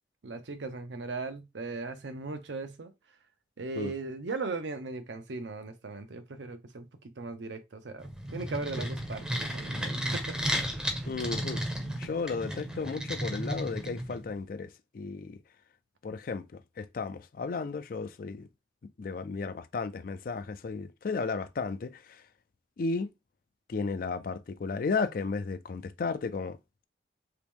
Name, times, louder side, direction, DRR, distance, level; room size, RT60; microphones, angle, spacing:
voice 1, 0.2-2.9 3.6-6.9 7.2-10.8, right 3 dB, 80° right, 0.6 m, -38 dB
sound 1, 8.0-14.3, equal, 5° right, 0.6 m, -34 dB
voice 2, 11.0-11.6 12.0-15.4 16.0-18.5 19.0-22.2 22.8-23.1 23.7-26.6, left 4 dB, 50° left, 0.4 m, -34 dB
3.0 x 2.9 x 3.5 m
head